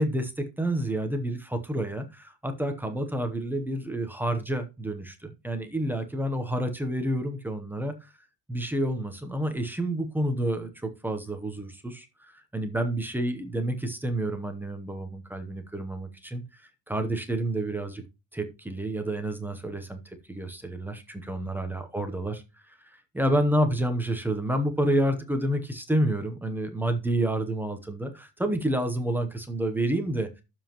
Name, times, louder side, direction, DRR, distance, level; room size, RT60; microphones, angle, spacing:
voice 1, 0.0-8.1 8.5-18.0 18.3-30.3, right 1 dB, 5° right, 0.8 m, -29 dB
11.5 x 7.4 x 2.9 m
cardioid pair, 175°, 47 cm